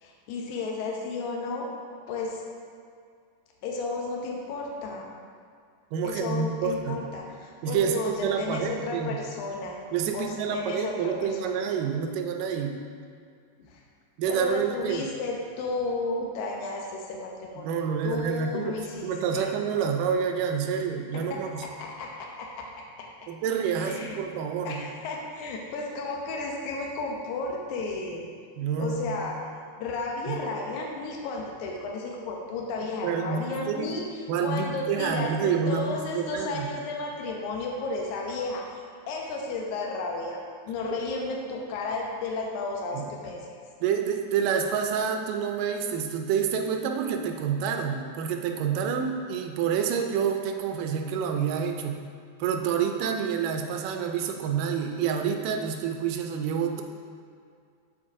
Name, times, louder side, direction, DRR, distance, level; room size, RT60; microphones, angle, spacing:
voice 1, 0.0-1.7 2.1-2.4 3.6-5.1 6.0-9.8 10.1-11.7 13.6-13.8 14.3-19.5 21.1-22.7 23.0-23.1 23.8-24.2 24.7-28.3 28.8-29.4 29.8-43.6, left 3 dB, 75° left, -1 dB, 2.1 m, -33 dB
voice 2, 5.9-7.0 7.6-9.2 9.9-12.8 14.2-15.0 17.6-18.8 19.0-21.6 23.3-24.8 28.6-29.2 30.3-30.4 33.0-33.9 34.3-36.7 42.9-43.1 43.8-52.0 52.4-56.8, right 7 dB, 90° right, 4 dB, 2.2 m, -28 dB
12.5 x 4.2 x 2.6 m, 2.2 s
omnidirectional pair, 3.7 m